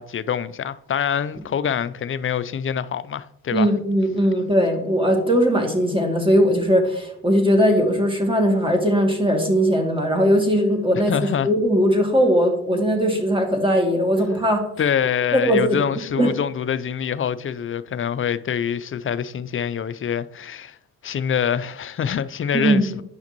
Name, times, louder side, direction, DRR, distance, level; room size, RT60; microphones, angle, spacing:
voice 1, 0.0-3.7 11.1-11.5 14.8-20.8 21.0-23.0, left 8 dB, 35° left, 0.4 m, -25 dB
voice 2, 3.5-11.1 11.4-14.6 15.3-15.8 16.2-16.3 22.5-22.9, equal, 15° right, 2.3 m, -19 dB
10.0 x 5.7 x 3.0 m
hypercardioid pair, 50°, 36 cm